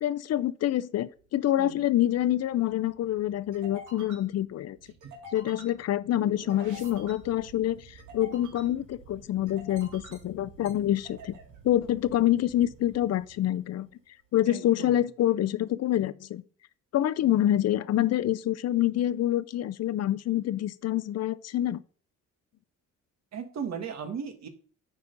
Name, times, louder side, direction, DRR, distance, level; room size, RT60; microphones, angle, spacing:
voice 1, 0.0-4.8 5.3-11.4 11.6-13.9 14.3-16.4 16.9-21.8, left 12 dB, 55° left, 0.5 m, -26 dB
sound 1, 1.2-13.9, right 2 dB, 80° right, 2.4 m, -49 dB
voice 2, 14.5-14.9 23.3-24.5, right 7 dB, 60° right, 1.5 m, -36 dB
9.5 x 4.1 x 5.2 m
cardioid pair, 90°, 30 cm